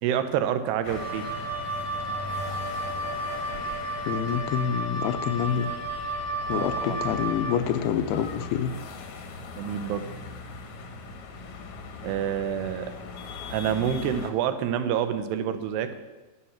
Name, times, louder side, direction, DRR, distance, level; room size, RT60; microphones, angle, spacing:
voice 1, 0.0-1.3 6.5-7.0 9.6-10.0 12.0-13.0 13.5-16.0, right 9 dB, 80° right, 10 dB, 2.9 m, -28 dB
sound 1, 0.8-14.3, left 4 dB, 60° left, 2.0 m, -40 dB
Wind instrument woodwind instrument, 0.9-7.6, right 1 dB, 45° right, 3.4 m, -32 dB
voice 2, 4.1-5.7 6.5-8.7, left 8 dB, 85° left, 9 dB, 2.6 m, -27 dB
11.5 x 8.6 x 7.2 m, 1.1 s
omnidirectional pair, 4.8 m